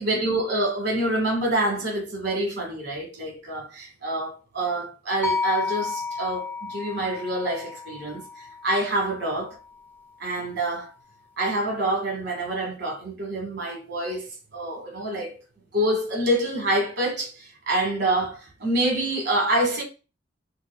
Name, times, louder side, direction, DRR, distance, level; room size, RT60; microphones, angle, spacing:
voice 1, 0.0-8.2 8.6-9.5 10.2-10.9 11.4-15.4 15.7-19.8, right 1 dB, 65° right, 1.4 m, -26 dB
sound 1, 5.2-9.4, left 4 dB, 10° left, 0.4 m, -32 dB
4.6 x 2.3 x 2.2 m
head